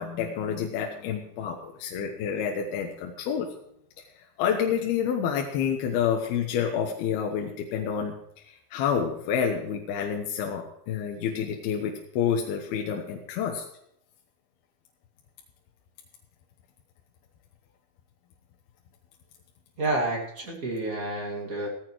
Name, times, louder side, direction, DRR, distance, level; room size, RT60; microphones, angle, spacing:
voice 1, 0.0-3.5 4.4-8.1 8.4-13.6, left 7 dB, 75° left, 2 dB, 2.8 m, -28 dB
voice 2, 19.8-21.7, right 2 dB, 40° right, 0 dB, 1.2 m, -29 dB
17.0 x 15.0 x 3.1 m, 0.76 s
omnidirectional pair, 4.9 m